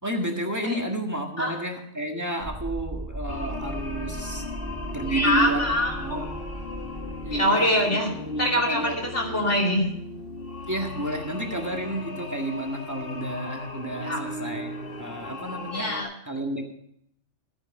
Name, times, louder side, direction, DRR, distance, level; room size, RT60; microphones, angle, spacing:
voice 1, 0.0-4.4 4.9-5.7 6.0-6.3 7.2-9.0 10.7-14.7 15.0-15.9 16.2-16.7, right 1 dB, 15° right, 1 dB, 1.7 m, -31 dB
sound 1, 2.4-7.4, right 1 dB, 40° right, 3.1 m, -37 dB
sound 2, 3.3-16.0, left 2 dB, 50° left, 1.8 m, -37 dB
voice 2, 5.1-6.2 7.3-8.1 8.4-9.9 14.0-14.2 15.7-16.1, left 1 dB, 80° left, -1 dB, 3.5 m, -24 dB
14.0 x 9.0 x 5.4 m, 0.72 s
omnidirectional pair, 1.2 m